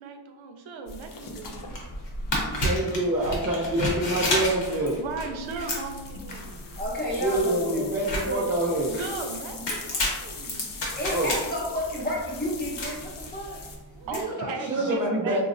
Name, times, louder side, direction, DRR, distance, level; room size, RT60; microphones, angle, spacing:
voice 1, 0.0-1.7 2.6-2.9 5.0-6.7 8.9-10.6 13.9-15.4, right 4 dB, 85° right, 4 dB, 0.5 m, -37 dB
sound 1, 0.9-3.1 5.4-13.8, left 3 dB, 50° left, 0.5 m, -41 dB
sound 2, 1.7-14.2, left 1 dB, 70° left, 0.9 m, -32 dB
voice 2, 2.4-5.0 7.2-9.0 11.1-11.3 14.7-15.4, right 1 dB, 30° right, -5 dB, 0.3 m, -26 dB
voice 3, 6.8-7.9 8.2-8.4 10.9-13.6 14.0-14.5 14.9-15.4, equal, 20° left, -4 dB, 0.8 m, -31 dB
3.8 x 2.0 x 2.5 m, 1.2 s
wide cardioid pair, 120°, 45 cm